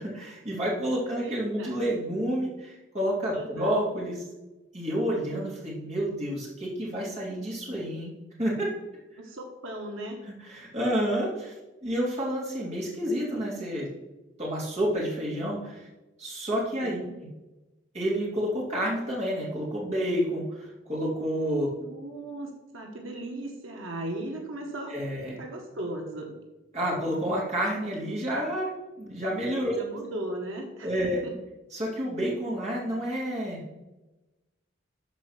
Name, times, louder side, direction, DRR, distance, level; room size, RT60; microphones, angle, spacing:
voice 1, 0.0-4.2 4.7-8.1 8.4-8.7 10.5-11.5 11.8-13.9 14.4-15.9 16.2-17.0 17.9-21.7 24.9-25.4 26.7-28.7 29.0-29.8 30.8-31.2 31.7-33.8, equal, 35° right, -5 dB, 3.1 m, -29 dB
voice 2, 1.2-1.8 3.3-3.8 9.2-10.2 16.8-17.2 21.8-24.9 25.4-26.4 29.7-31.3, right 1 dB, 90° right, 1 dB, 1.5 m, -37 dB
13.0 x 4.5 x 5.9 m, 1.1 s
head